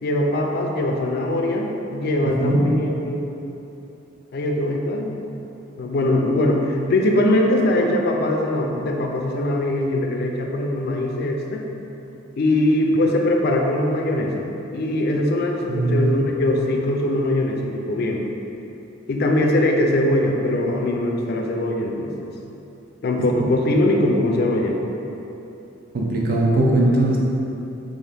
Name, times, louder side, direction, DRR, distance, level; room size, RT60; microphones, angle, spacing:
voice 1, 0.0-3.5 4.3-5.3 5.8-11.7 12.4-14.4 14.7-18.2 19.1-22.3 23.0-24.8, left 1 dB, 55° left, 1 dB, 0.4 m, -21 dB
voice 2, 2.2-2.6 15.7-16.1 25.9-27.2, right 1 dB, 50° right, -3 dB, 0.5 m, -19 dB
3.7 x 2.5 x 3.4 m, 2.9 s
head